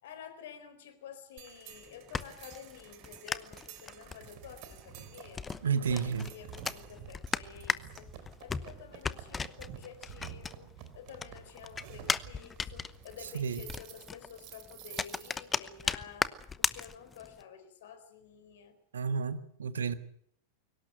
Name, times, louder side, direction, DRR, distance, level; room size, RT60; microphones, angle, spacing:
voice 1, 0.0-5.4 5.8-18.8, left 8 dB, 55° left, 10 dB, 4.3 m, -50 dB
sound 1, 1.4-15.6, right 10 dB, 45° right, 3.3 m, -50 dB
sound 2, 1.7-10.9 11.2-17.4, left 5 dB, 15° left, 0.9 m, -37 dB
voice 2, 5.6-6.3 13.3-13.6 18.9-20.0, right 6 dB, 65° right, 12 dB, 1.5 m, -31 dB
23.5 x 18.5 x 7.9 m, 0.65 s
figure-of-eight pair, 90°, 0 cm